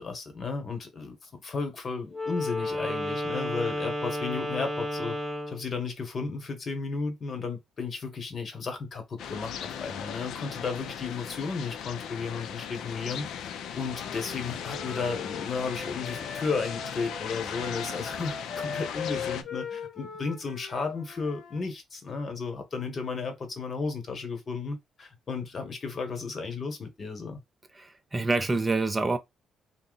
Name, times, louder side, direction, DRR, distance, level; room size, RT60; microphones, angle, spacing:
voice 1, 0.0-5.2 5.5-13.3 13.7-27.4, left 4 dB, 45° left, 1.1 m, -34 dB
Wind instrument woodwind instrument, 2.1-5.7, left 1 dB, 5° right, 0.9 m, -32 dB
sound 1, 9.2-19.4, left 8 dB, 80° left, 0.4 m, -38 dB
Wind instrument woodwind instrument 2, 13.6-21.6, left 6 dB, 60° left, 0.8 m, -40 dB
voice 2, 27.7-29.2, right 3 dB, 25° right, 0.4 m, -27 dB
2.7 x 2.1 x 3.8 m
cardioid pair, 90°, 0 cm